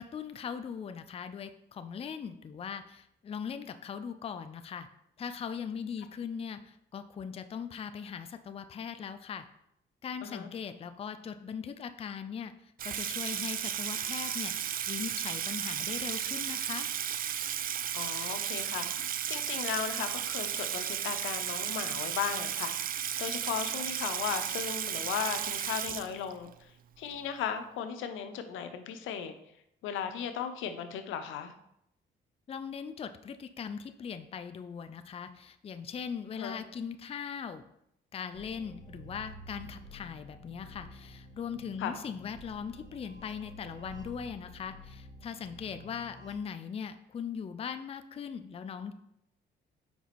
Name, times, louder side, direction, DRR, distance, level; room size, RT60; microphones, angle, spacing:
voice 1, 0.0-4.9 5.2-9.4 10.0-16.9 32.5-37.6 38.1-48.9, left 7 dB, 30° left, 10 dB, 0.4 m, -40 dB
Water tap faucet / Sink (filling or washing), 12.8-26.5, right 9 dB, 45° right, 0.4 m, -34 dB
voice 2, 17.9-19.0 19.3-26.5 27.0-29.3 29.8-31.5 36.4-36.6 41.8-42.0, left 8 dB, 85° left, 9 dB, 0.6 m, -36 dB
sound 1, 38.3-46.3, equal, 80° right, 2.2 m, -50 dB
5.0 x 4.6 x 4.1 m, 0.79 s
cardioid pair, 90°, 20 cm